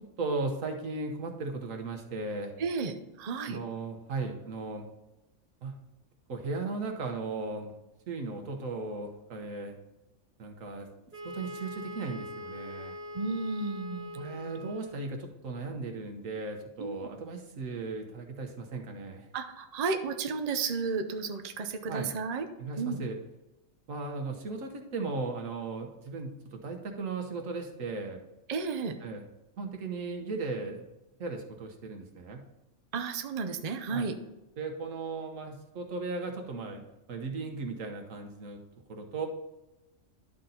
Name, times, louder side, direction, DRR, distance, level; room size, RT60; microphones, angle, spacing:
voice 1, 0.2-2.5 3.5-4.8 5.6-5.7 6.3-7.7 8.1-9.8 10.4-10.9 11.2-13.0 14.2-19.3 21.9-22.1 22.6-23.2 23.9-28.2 29.0-29.2 29.6-30.8 31.2-32.4 33.9-34.1 34.6-36.8 37.1-38.6 38.9-39.3, right 3 dB, 80° right, 3 dB, 1.5 m, -36 dB
voice 2, 2.6-3.6 13.1-14.3 14.6-14.8 16.8-17.1 19.3-22.5 22.8-23.0 28.5-29.0 32.9-34.2, right 4 dB, 45° right, 6 dB, 0.6 m, -33 dB
Wind instrument woodwind instrument, 11.1-15.1, left 1 dB, 10° right, 1.5 m, -42 dB
11.5 x 4.0 x 4.2 m, 1.0 s
omnidirectional pair, 1.3 m